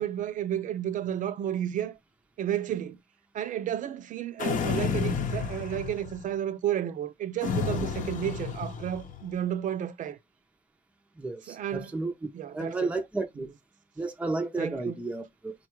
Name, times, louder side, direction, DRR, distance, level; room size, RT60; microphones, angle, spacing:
voice 1, 0.0-2.0 2.4-3.0 3.3-10.2 11.5-11.9 12.3-12.9 14.6-15.0, right 10 dB, 50° right, 0.5 m, -32 dB
sound 1, 4.4-6.3 7.4-9.2, left 6 dB, 50° left, 0.7 m, -31 dB
voice 2, 11.2-12.1 12.5-13.5 14.0-15.5, right 3 dB, 5° right, 0.6 m, -32 dB
3.8 x 2.3 x 4.5 m
cardioid pair, 110°, 17 cm